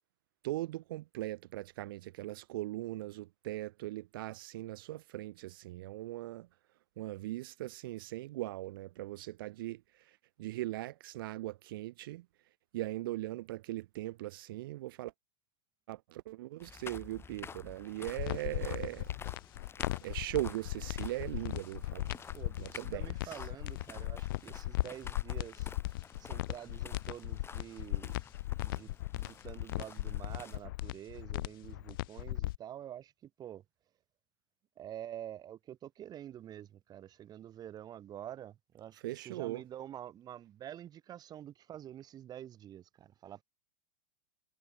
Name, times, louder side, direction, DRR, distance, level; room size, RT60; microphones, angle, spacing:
voice 1, 0.4-6.5 7.0-12.2 12.7-15.1 15.9-19.1 20.0-22.2 22.6-23.4 39.0-39.6, right 17 dB, 60° right, 3.0 m, -40 dB
sound 1, 16.6-30.6, left 6 dB, 20° left, 6.6 m, -51 dB
sound 2, 18.1-32.6, left 17 dB, 60° left, 0.7 m, -37 dB
voice 2, 22.3-25.7 26.2-28.2 28.6-33.6 34.8-43.4, right 11 dB, 30° right, 5.4 m, -47 dB
hypercardioid pair, 105°, 13 cm